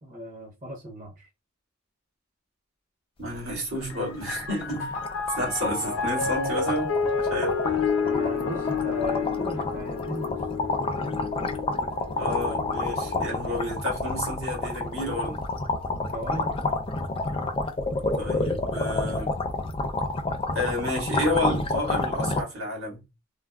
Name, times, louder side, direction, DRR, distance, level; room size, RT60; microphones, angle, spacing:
voice 1, 0.0-1.3 7.9-10.4 16.1-16.6, left 1 dB, 40° right, 0.7 m, -35 dB
voice 2, 3.2-5.0 5.4-7.6 12.1-15.4 18.2-19.3 20.5-23.0, left 1 dB, 85° right, 1.7 m, -30 dB
sound 1, 3.3-3.5 3.8-3.9 4.2-22.4, left 2 dB, 25° left, 0.4 m, -29 dB
Piano, 3.7-13.4, left 5 dB, 80° left, 0.6 m, -30 dB
3.4 x 2.0 x 2.3 m
head